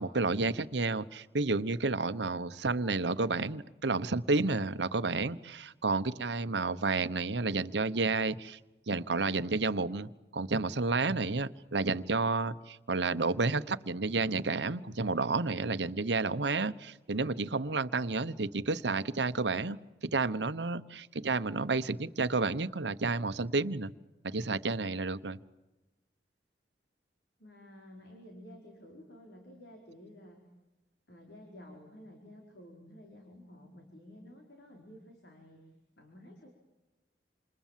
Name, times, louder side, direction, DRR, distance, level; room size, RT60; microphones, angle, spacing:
voice 1, 0.0-8.6 8.9-19.8 20.0-23.9 24.2-25.4, right 3 dB, 80° right, 13 dB, 1.0 m, -31 dB
voice 2, 27.4-30.4 31.1-35.6 36.0-36.5, left 1 dB, 75° left, 1 dB, 4.9 m, -52 dB
28.0 x 28.0 x 7.5 m, 1.0 s
head